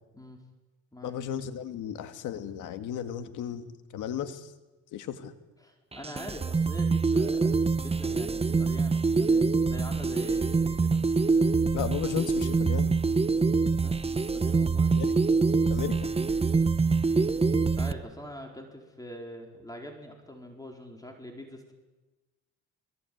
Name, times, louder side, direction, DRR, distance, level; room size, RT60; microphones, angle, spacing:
voice 1, 1.0-3.6 3.9-4.5 4.9-5.3 11.7-12.9 14.9-15.1 15.7-16.0, left 9 dB, 90° left, 9 dB, 2.2 m, -34 dB
voice 2, 5.6-11.0 13.8-15.0 17.7-21.7, equal, 10° left, 2 dB, 4.6 m, -43 dB
sound 1, 5.9-17.9, right 4 dB, 20° right, 1.0 m, -25 dB
23.0 x 22.5 x 9.5 m, 1.1 s
cardioid pair, 90°, 30 cm